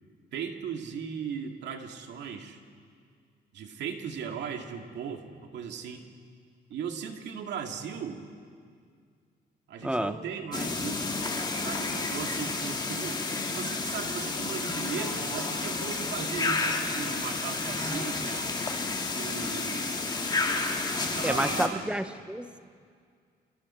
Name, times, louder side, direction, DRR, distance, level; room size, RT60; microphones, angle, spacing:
voice 1, 0.3-2.6 3.5-6.1 6.7-8.2 9.7-11.1 11.6-18.5 19.1-20.1 21.0-21.9, right 7 dB, 85° right, 4 dB, 2.1 m, -37 dB
voice 2, 9.8-10.1 21.2-22.6, right 1 dB, 5° right, 11 dB, 0.7 m, -29 dB
sound 1, 10.5-21.7, left 3 dB, 25° left, 2.0 m, -31 dB
29.0 x 26.0 x 4.3 m, 2.1 s
cardioid pair, 140°, 18 cm